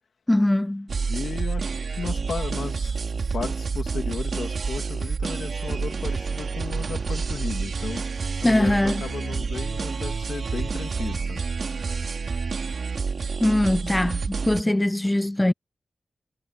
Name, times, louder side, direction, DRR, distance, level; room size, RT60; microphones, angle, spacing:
voice 1, 0.3-0.9 8.4-9.0 13.4-15.5, left 1 dB, 10° left, 0.3 m, -21 dB
sound 1, 0.9-14.6, right 5 dB, 60° right, 2.8 m, -28 dB
voice 2, 1.1-8.1 8.4-11.4, left 5 dB, 75° left, 2.8 m, -35 dB
wide cardioid pair, 130°, 0 cm